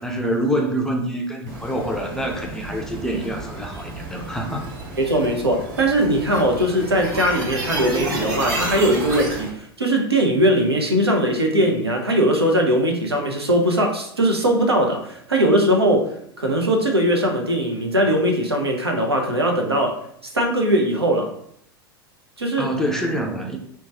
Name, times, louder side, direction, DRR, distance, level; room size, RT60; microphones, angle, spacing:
voice 1, 0.0-4.7 22.6-23.6, equal, 5° left, 1 dB, 0.4 m, -26 dB
sound 1, 1.5-9.5, right 2 dB, 50° right, 1.1 m, -31 dB
voice 2, 5.0-16.1 16.4-20.0 20.2-21.3 22.4-22.7, right 1 dB, 85° right, 2 dB, 0.6 m, -20 dB
2.9 x 2.2 x 2.7 m, 0.66 s
figure-of-eight pair, 85°, 13 cm